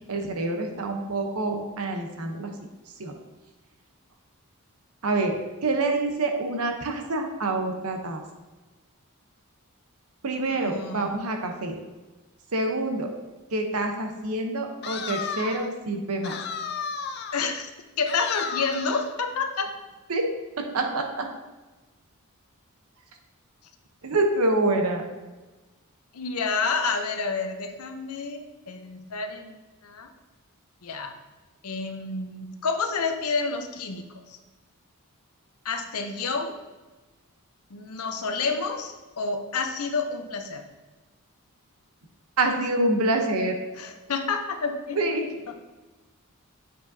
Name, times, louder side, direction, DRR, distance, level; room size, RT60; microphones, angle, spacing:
voice 1, 0.1-2.5 3.0-3.1 5.0-5.3 5.6-8.2 10.2-11.7 12.5-13.1 13.5-16.3 20.1-20.3 20.7-21.3 24.0-25.0 42.4-43.5 45.0-45.2, right 2 dB, 85° right, 4 dB, 0.9 m, -26 dB
voice 2, 10.5-11.2 17.3-17.7 18.0-19.7 26.1-29.5 29.8-30.1 30.8-31.1 31.6-34.4 35.6-36.5 37.7-40.6 43.8-45.3, left 4 dB, 90° left, 6 dB, 0.7 m, -29 dB
sound 1, 14.8-15.7 16.2-17.5 18.1-19.1, left 6 dB, 50° left, 0.4 m, -33 dB
7.4 x 4.9 x 2.7 m, 1.2 s
head